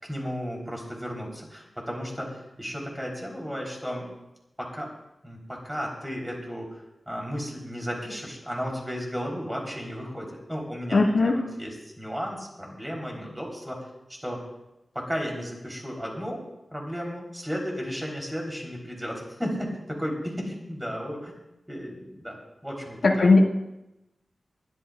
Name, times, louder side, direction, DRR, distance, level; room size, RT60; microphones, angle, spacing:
voice 1, 0.0-4.1 4.6-4.9 5.2-6.7 7.1-13.8 14.1-14.4 14.9-16.4 16.7-21.3 21.7-23.4, equal, 10° right, -2 dB, 3.9 m, -34 dB
voice 2, 10.9-11.4 23.0-23.4, left 3 dB, 75° left, -1 dB, 2.2 m, -18 dB
23.5 x 13.0 x 2.5 m, 0.93 s
wide cardioid pair, 90°, 0 cm